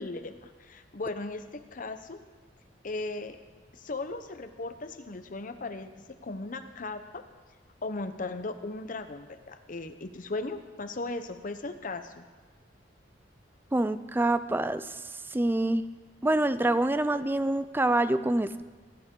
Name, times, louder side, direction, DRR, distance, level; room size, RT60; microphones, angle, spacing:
voice 1, 0.0-2.2 2.8-3.4 3.7-7.2 7.8-12.2, left 2 dB, 45° left, 8 dB, 0.8 m, -37 dB
voice 2, 13.7-15.0 15.3-15.8 16.2-18.6, right 1 dB, 10° right, 13 dB, 0.4 m, -26 dB
19.0 x 11.0 x 3.8 m, 1.3 s
head